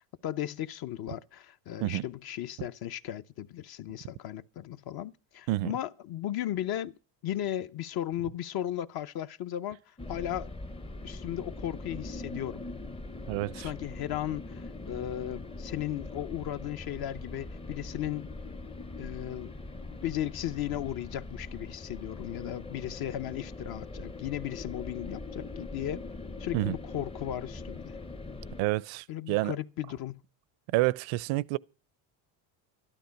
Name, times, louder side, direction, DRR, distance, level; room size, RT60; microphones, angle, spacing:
voice 1, 0.2-6.9 7.2-9.8 10.1-10.5 11.0-12.6 13.6-18.3 19.0-19.5 20.0-26.0 26.4-28.0 29.1-30.2, left 12 dB, 50° left, 0.9 m, -36 dB
sound 1, 10.0-28.6, left 2 dB, 10° left, 0.7 m, -42 dB
voice 2, 13.3-13.7 26.5-26.8 28.6-29.5 30.7-31.6, right 18 dB, 70° right, 0.7 m, -28 dB
13.0 x 12.0 x 5.8 m
supercardioid pair, 105°, 47 cm